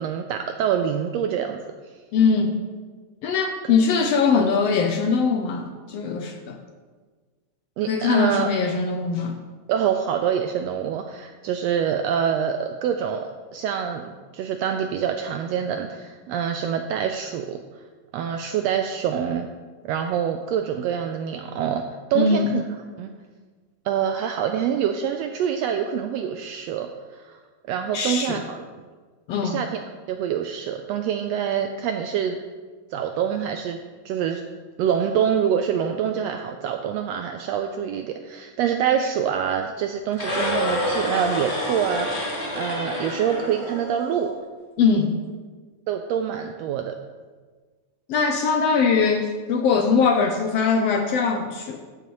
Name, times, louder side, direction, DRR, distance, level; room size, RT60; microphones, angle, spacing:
voice 1, 0.0-1.6 7.8-8.5 9.7-17.6 18.1-19.5 19.8-21.8 22.1-22.6 23.0-23.1 23.8-27.4 27.7-28.6 29.4-29.8 30.1-32.4 32.9-33.8 34.0-34.4 34.8-44.3 45.9-46.9, right 8 dB, 80° right, 5 dB, 1.5 m, -25 dB
voice 2, 2.1-2.6 3.2-6.6 7.9-9.4 22.1-22.6 27.9-28.4 29.3-29.6 44.8-45.2 48.1-51.9, left 5 dB, 75° left, 4 dB, 1.5 m, -21 dB
sound 1, 40.1-44.3, left 1 dB, 20° left, 1.5 m, -28 dB
13.5 x 7.9 x 3.1 m, 1.4 s
omnidirectional pair, 3.4 m